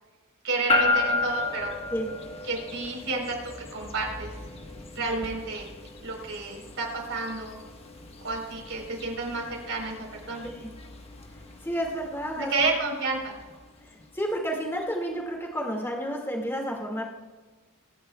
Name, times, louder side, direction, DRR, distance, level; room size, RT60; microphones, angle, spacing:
voice 1, 0.4-1.7 2.5-4.3 4.9-5.7 6.0-7.6 8.2-10.0 10.3-10.5 12.4-13.3, right 3 dB, 60° right, 0 dB, 4.3 m, -30 dB
sound 1, 0.7-15.0, left 2 dB, 30° left, 1.4 m, -34 dB
voice 2, 10.4-10.7 11.6-12.7 13.8-17.0, equal, 10° left, 0 dB, 2.2 m, -31 dB
24.0 x 11.0 x 2.4 m, 1.3 s
head